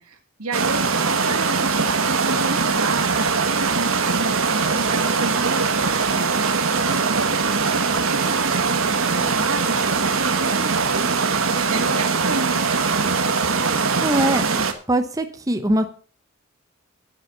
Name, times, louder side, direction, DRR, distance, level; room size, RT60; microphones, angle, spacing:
voice 1, 0.0-6.5 6.8-11.0 11.6-13.0, right 3 dB, 85° right, 7 dB, 2.1 m, -32 dB
sound 1, 0.5-14.7, right 4 dB, 65° right, 1.4 m, -21 dB
voice 2, 14.0-14.6 14.9-15.8, right 1 dB, 15° right, 8 dB, 0.9 m, -21 dB
10.5 x 8.8 x 5.4 m, 0.40 s
head